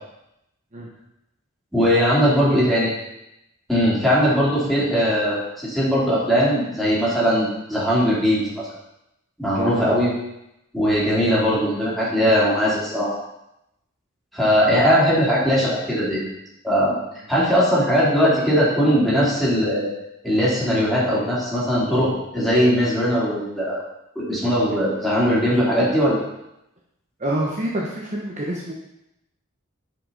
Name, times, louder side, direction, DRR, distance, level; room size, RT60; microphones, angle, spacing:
voice 1, 1.7-2.9 3.7-8.6 9.4-10.1 10.7-13.1 14.3-16.2 16.6-16.9 17.3-19.9 20.2-23.8 24.1-26.2, equal, ahead, -9 dB, 3.1 m, -19 dB
voice 2, 9.5-9.9 27.2-28.7, right 1 dB, 35° right, -3 dB, 1.0 m, -27 dB
9.9 x 5.0 x 4.0 m, 0.86 s
head